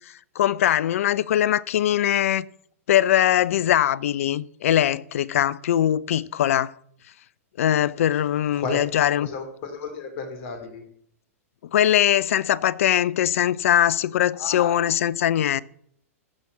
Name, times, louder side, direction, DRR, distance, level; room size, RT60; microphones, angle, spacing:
voice 1, 0.4-2.5 2.9-6.7 7.6-9.3 11.7-15.6, left 11 dB, 65° left, 0.5 m, -21 dB
voice 2, 9.2-10.8 14.4-14.8, left 4 dB, 45° left, 2.9 m, -33 dB
14.5 x 6.0 x 5.6 m
hypercardioid pair, 110°, 8 cm